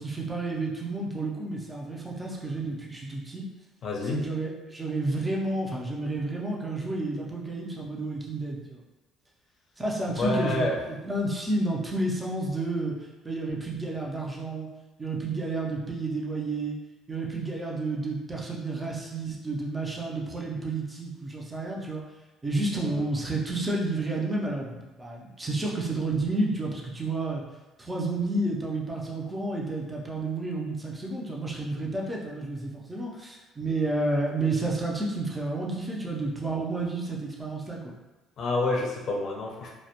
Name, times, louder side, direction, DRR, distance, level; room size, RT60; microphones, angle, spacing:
voice 1, 0.0-3.4 4.0-8.8 9.8-12.9 13.2-14.7 15.0-16.8 17.1-22.0 22.4-27.4 27.8-37.8, right 2 dB, 15° right, -3 dB, 0.4 m, -30 dB
voice 2, 3.8-4.3 10.1-10.8 22.7-23.1 38.4-39.8, left 2 dB, 45° left, -1 dB, 0.5 m, -28 dB
2.2 x 2.1 x 2.8 m, 1.1 s
cardioid pair, 135°, 0 cm